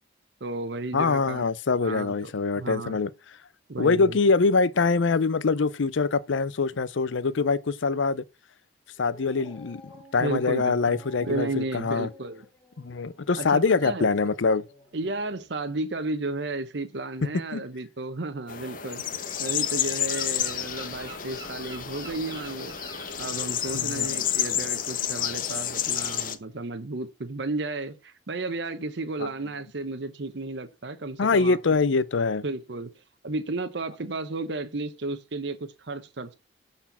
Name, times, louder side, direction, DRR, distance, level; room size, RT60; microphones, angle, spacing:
voice 1, 0.4-1.4 1.7-2.3 2.6-3.0 3.7-4.2 10.2-12.5 13.4-14.1 14.9-19.0 19.4-31.6 32.4-36.3, right 2 dB, 60° right, 0.8 m, -33 dB
voice 2, 0.9-3.1 3.8-8.2 9.0-12.1 12.8-14.6 17.5-17.6 23.7-24.2 29.2-29.3 31.2-32.4, left 4 dB, 75° left, 0.6 m, -24 dB
Dog, 9.0-15.6, right 1 dB, 5° left, 2.6 m, -52 dB
sound 1, 18.5-26.3, left 10 dB, 45° left, 0.9 m, -30 dB
Gull seagull, 19.0-24.8, right 3 dB, 20° right, 1.6 m, -47 dB
12.0 x 4.4 x 5.6 m
head